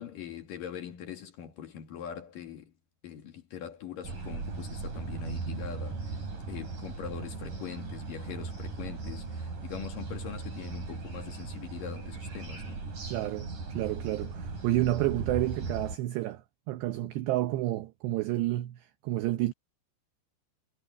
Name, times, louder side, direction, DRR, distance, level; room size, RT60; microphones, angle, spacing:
voice 1, 0.0-2.7 3.0-6.2 6.5-12.8, left 9 dB, 55° left, 2.7 m, -42 dB
sound 1, 4.0-16.0, right 4 dB, 40° right, 6.8 m, -38 dB
voice 2, 13.1-16.4 16.7-19.5, right 16 dB, 75° right, 2.6 m, -30 dB
omnidirectional pair, 5.7 m